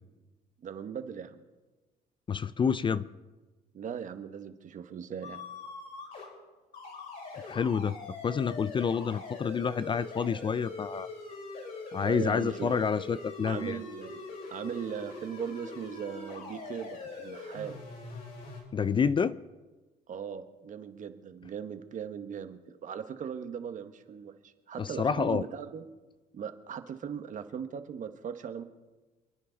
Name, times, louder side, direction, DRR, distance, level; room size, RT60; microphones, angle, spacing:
voice 1, 0.6-1.4 3.7-5.4 12.0-12.7 13.4-14.2 14.5-17.8 20.1-25.8 26.3-28.6, right 7 dB, 50° right, 9 dB, 1.2 m, -39 dB
voice 2, 2.3-3.1 7.3-11.1 11.9-13.8 18.7-19.4 24.8-25.5, left 6 dB, 30° left, 16 dB, 0.4 m, -29 dB
sound 1, 5.2-6.3 6.7-18.6, left 3 dB, 60° left, 5.4 m, -43 dB
27.5 x 9.8 x 3.9 m, 1.2 s
cardioid pair, 110°, 17 cm